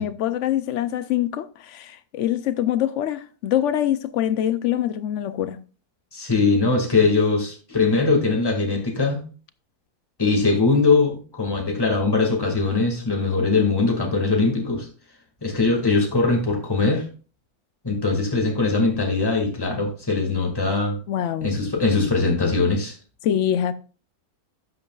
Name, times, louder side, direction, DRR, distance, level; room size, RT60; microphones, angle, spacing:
voice 1, 0.0-5.6 21.1-21.5 23.2-23.7, left 11 dB, 65° left, 0.7 m, -24 dB
voice 2, 6.1-9.2 10.2-14.9 15.4-17.0 17.8-21.0 21.4-22.9, left 3 dB, 15° left, 1.9 m, -21 dB
12.0 x 8.2 x 2.3 m
omnidirectional pair, 1.6 m